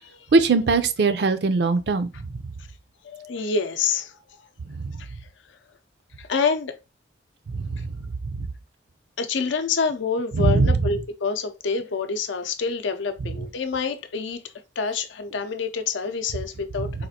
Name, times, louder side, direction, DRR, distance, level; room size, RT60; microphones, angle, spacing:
voice 1, 0.3-2.1 4.7-4.9 7.5-7.9 8.4-8.5 10.3-10.8 16.8-16.9, right 3 dB, 60° right, 0.4 m, -21 dB
voice 2, 3.0-4.2 5.0-5.2 5.5-5.6 6.2-6.8 9.2-14.4 14.8-17.1, left 5 dB, 90° left, 0.6 m, -27 dB
4.1 x 2.4 x 2.7 m
head